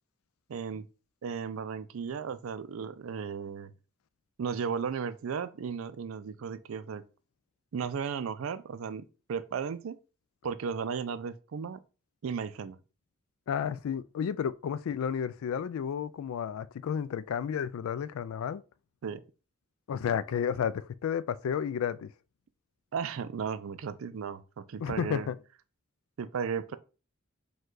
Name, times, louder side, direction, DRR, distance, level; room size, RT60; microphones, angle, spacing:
voice 1, 0.5-0.9 1.2-3.7 4.4-7.0 7.7-9.0 9.3-10.0 10.4-11.8 12.2-12.8 19.0-19.2 22.9-25.3 26.2-26.8, right 6 dB, 75° right, 0.4 m, -35 dB
voice 2, 13.5-18.6 19.9-22.1 24.8-25.4, left 8 dB, 85° left, 0.3 m, -32 dB
5.2 x 2.3 x 3.8 m
head